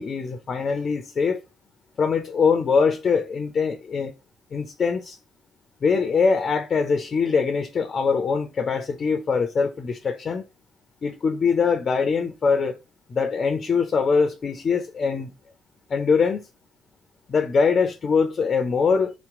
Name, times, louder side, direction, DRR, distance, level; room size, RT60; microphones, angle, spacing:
voice 1, 0.0-1.4 2.0-4.1 4.5-5.2 5.8-10.4 11.0-12.8 13.1-15.3 15.9-16.4 17.3-19.1, left 5 dB, 50° left, 0.7 m, -22 dB
3.9 x 3.0 x 3.7 m
hypercardioid pair, 50°, 0 cm